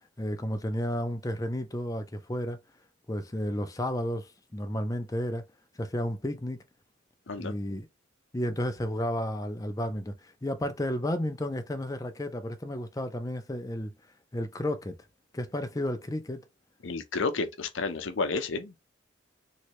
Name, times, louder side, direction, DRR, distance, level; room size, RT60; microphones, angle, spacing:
voice 1, 0.2-2.6 3.1-5.4 5.8-6.6 7.4-7.9 8.3-13.9 14.3-15.0 15.3-16.4, left 1 dB, 15° left, 0.5 m, -32 dB
voice 2, 16.8-18.8, left 3 dB, 70° left, 0.7 m, -31 dB
3.1 x 2.8 x 2.9 m
head